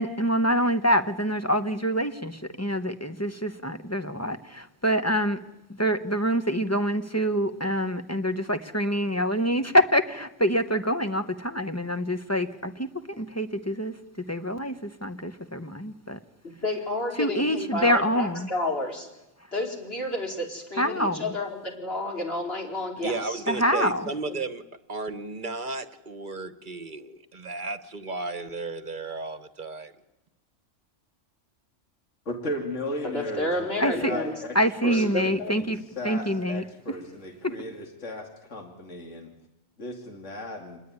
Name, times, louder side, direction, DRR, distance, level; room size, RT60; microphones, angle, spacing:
voice 1, 0.0-5.4 5.8-12.9 13.2-13.9 14.3-16.2 17.2-18.5 20.8-21.3 23.5-24.1 33.8-34.2 34.5-35.8 36.0-36.6 37.4-37.5, equal, 15° left, 8 dB, 0.9 m, -26 dB
voice 2, 16.6-19.1 19.5-23.4 24.3-24.4 33.0-34.3 34.9-35.6, left 1 dB, 50° left, 0 dB, 4.8 m, -31 dB
voice 3, 23.0-24.6 24.9-29.9, right 3 dB, 40° right, 11 dB, 1.3 m, -34 dB
voice 4, 32.3-34.6 34.8-39.3 39.8-40.8, left 1 dB, 70° left, 3 dB, 2.8 m, -35 dB
27.0 x 20.0 x 9.6 m, 0.97 s
omnidirectional pair, 1.3 m